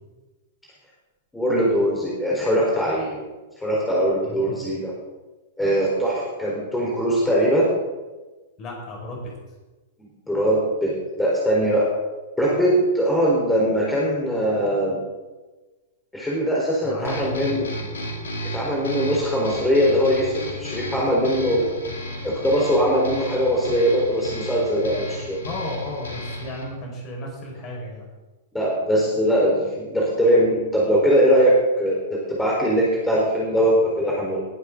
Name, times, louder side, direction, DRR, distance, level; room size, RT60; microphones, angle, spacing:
voice 1, 1.3-3.2 3.6-4.9 5.6-7.7 10.3-10.9 11.2-11.9 12.4-15.0 16.1-17.7 18.5-21.6 22.2-25.4 28.5-31.5 31.8-34.4, equal, 5° left, -5 dB, 4.1 m, -21 dB
voice 2, 4.2-4.6 8.6-9.3 16.8-17.9 25.4-28.1, left 1 dB, 30° left, -1 dB, 5.2 m, -34 dB
sound 1, 17.0-26.6, left 1 dB, 65° left, 3.5 m, -33 dB
19.5 x 11.5 x 3.8 m, 1.2 s
figure-of-eight pair, 100°, 0 cm